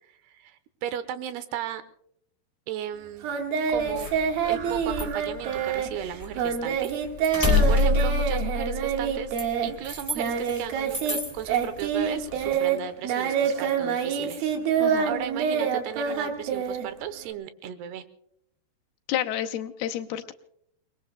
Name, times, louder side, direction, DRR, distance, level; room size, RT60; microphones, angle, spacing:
voice 1, 0.1-1.8 2.7-3.3 3.7-4.1 4.4-6.9 7.7-9.4 9.6-18.0, right 10 dB, 80° right, 12 dB, 2.8 m, -35 dB
Singing, 3.2-11.2 11.5-17.3, right 7 dB, 65° right, 3.3 m, -27 dB
sound 1, 3.7-6.5 6.8-10.6 10.9-11.6 12.1-12.5, left 2 dB, 5° right, 2.3 m, -27 dB
voice 2, 7.4-7.7 14.8-15.1 19.1-20.3, left 11 dB, 75° left, 5 dB, 2.6 m, -30 dB
29.5 x 20.5 x 2.2 m, 0.72 s
omnidirectional pair, 4.7 m